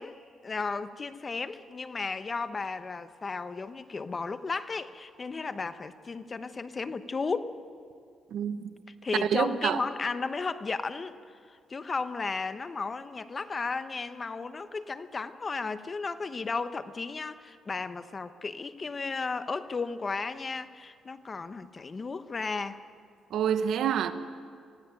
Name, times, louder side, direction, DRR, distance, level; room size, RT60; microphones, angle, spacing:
voice 1, 0.0-7.5 9.0-11.2 11.5-22.8, left 4 dB, 35° left, 1.0 m, -34 dB
voice 2, 9.3-9.8 23.3-24.1, right 9 dB, 75° right, 1.2 m, -27 dB
22.0 x 16.5 x 9.0 m
cardioid pair, 90°, 0 cm